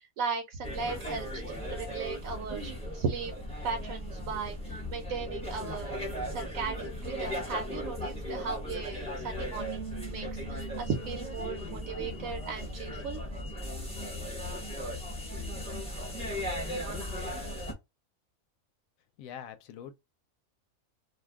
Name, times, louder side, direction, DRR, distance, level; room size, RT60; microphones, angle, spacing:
voice 1, 0.0-3.3 3.6-6.0 6.3-13.2, right 5 dB, 75° right, 1.0 m, -37 dB
sound 1, 0.6-17.7, left 1 dB, 5° left, 0.7 m, -37 dB
Bass guitar, 9.6-15.8, right 8 dB, 50° right, 0.7 m, -48 dB
voice 2, 19.2-19.9, left 9 dB, 75° left, 1.0 m, -43 dB
2.6 x 2.2 x 3.4 m
omnidirectional pair, 1.5 m